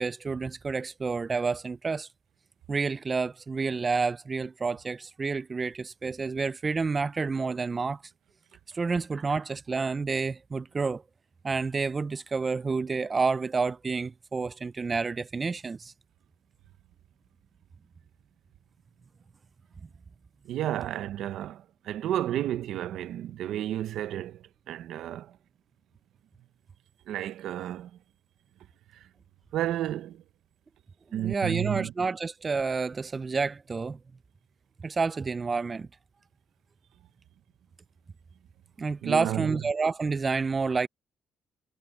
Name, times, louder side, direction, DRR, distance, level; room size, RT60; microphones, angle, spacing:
voice 1, 0.0-2.1 2.7-8.0 8.7-11.0 11.4-15.9 31.1-34.0 34.8-35.9 38.8-40.9, right 4 dB, 30° right, 0.4 m, -29 dB
voice 2, 20.4-25.4 27.1-27.9 29.5-30.2 31.1-31.9 39.0-39.5, right 12 dB, 80° right, 0.8 m, -32 dB
cardioid pair, 90°, 0 cm